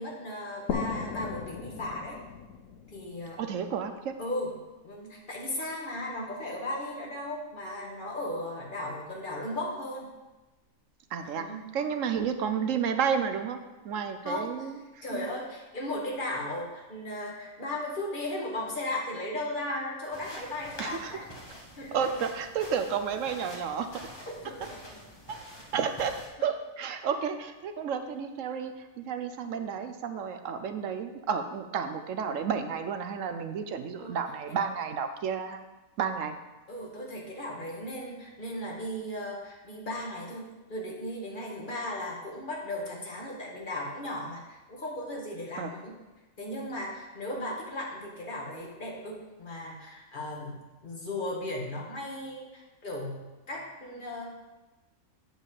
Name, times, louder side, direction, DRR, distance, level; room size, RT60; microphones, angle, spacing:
voice 1, 0.0-2.2 2.9-3.4 4.2-4.5 4.8-10.1 11.3-11.7 14.2-14.7 15.0-21.2 21.8-22.0 24.4-24.6 34.0-34.2 34.5-34.6 36.7-46.0 46.4-53.2 53.5-54.3, left 1 dB, 35° left, -2 dB, 1.9 m, -36 dB
sound 1, 0.7-4.2, left 6 dB, 70° left, 1.1 m, -37 dB
voice 2, 3.4-4.1 11.1-15.3 20.8-21.2 21.9-24.1 25.3-25.4 25.7-35.6 36.0-36.4 45.6-45.7, right 7 dB, 65° right, 8 dB, 1.0 m, -32 dB
sound 2, 20.1-26.3, equal, 20° left, 1.4 m, -46 dB
9.1 x 6.5 x 4.9 m, 1.1 s
omnidirectional pair, 1.5 m